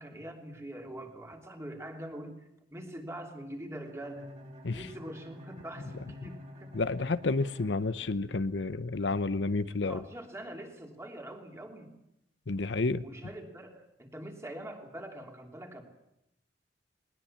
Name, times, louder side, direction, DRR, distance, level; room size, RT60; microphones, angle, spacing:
voice 1, 0.0-4.3 4.7-6.7 9.6-11.9 13.0-15.8, right 1 dB, 15° right, 3.0 m, -44 dB
Bowed string instrument, 3.8-8.7, left 1 dB, 40° right, 5.0 m, -49 dB
voice 2, 6.7-10.0 12.5-13.0, left 3 dB, 80° left, 0.8 m, -30 dB
20.5 x 20.0 x 8.7 m
head